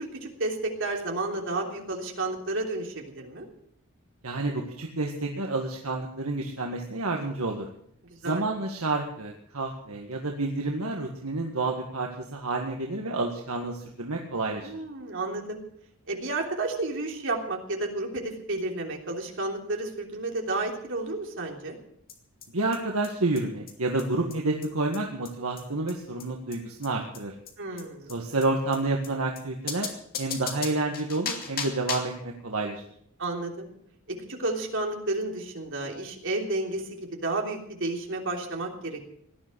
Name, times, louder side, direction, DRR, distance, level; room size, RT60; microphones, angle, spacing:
voice 1, 0.0-3.5 8.1-8.4 14.6-15.6 16.1-21.8 27.6-28.1 33.2-33.7 34.3-39.0, right 2 dB, 60° right, 1 dB, 3.3 m, -31 dB
voice 2, 4.2-7.7 8.2-14.7 22.5-27.3 28.1-29.9 30.2-32.8, right 2 dB, 75° right, 1 dB, 1.8 m, -29 dB
sound 1, 22.1-22.2 22.4-22.5 22.7-22.8 23.0-23.1 23.4-23.5 23.7-23.8 24.0-24.1 24.3-24.4 24.6-24.7 24.9-25.0 25.3-25.4 25.6-25.7 25.9-26.0 26.2-26.3 26.5-26.6 26.8-26.9 27.1-27.2 27.5-27.6 27.8-27.9 28.1-28.2 28.4-28.5 28.7-28.8 29.0-29.1 29.4-29.5 29.7-32.2, left 6 dB, 45° left, 2.4 m, -35 dB
17.5 x 11.5 x 6.3 m, 0.68 s
head